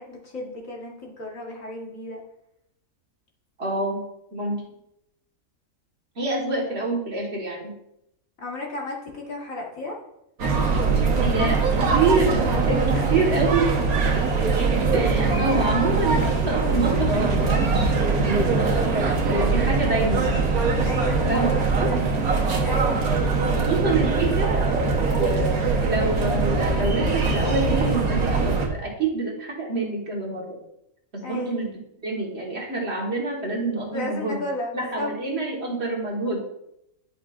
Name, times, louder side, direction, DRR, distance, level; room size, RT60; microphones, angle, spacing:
voice 1, 0.0-2.2 8.4-10.0 12.9-13.3 20.9-22.1 22.6-23.0 31.2-31.6 33.9-35.1, left 2 dB, 65° left, -1 dB, 1.9 m, -33 dB
voice 2, 3.6-4.6 6.2-7.8 11.2-12.8 13.1-14.2 14.9-20.4 21.3-21.5 21.8-21.9 22.6-22.7 23.4-30.6 31.1-34.4 34.7-36.4, right 2 dB, 50° right, -2 dB, 1.8 m, -27 dB
sound 1, 10.4-28.7, right 4 dB, 85° right, 1.7 m, -22 dB
10.5 x 5.7 x 2.5 m, 0.81 s
omnidirectional pair, 1.5 m